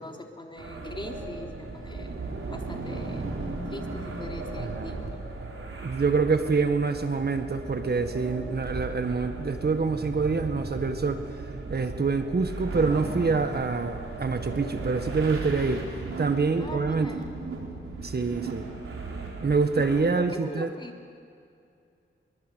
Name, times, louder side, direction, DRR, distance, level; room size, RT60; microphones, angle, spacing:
voice 1, 0.0-2.2 2.5-3.3 3.6-5.1 16.6-17.4 20.1-20.9, left 2 dB, 25° left, 2 dB, 3.3 m, -41 dB
sound 1, 0.6-20.0, right 3 dB, 85° right, 4.6 m, -36 dB
voice 2, 4.6-5.0 5.8-11.2 11.7-15.9 16.2-17.1 18.0-18.7 19.4-20.7, right 4 dB, 50° right, 8 dB, 1.7 m, -26 dB
23.5 x 23.0 x 8.4 m, 2.4 s
cardioid pair, 75°, 21 cm